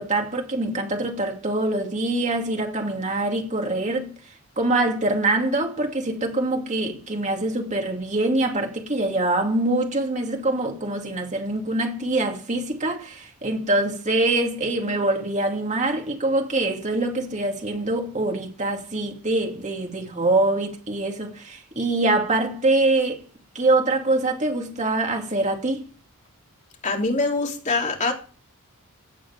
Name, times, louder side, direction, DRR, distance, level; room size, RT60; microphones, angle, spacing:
voice 1, 0.0-4.1 4.6-23.2 23.5-25.9, right 2 dB, 35° right, 2.8 m, -24 dB
voice 2, 26.8-28.1, left 3 dB, 35° left, 3.8 m, -24 dB
17.0 x 6.5 x 7.2 m
head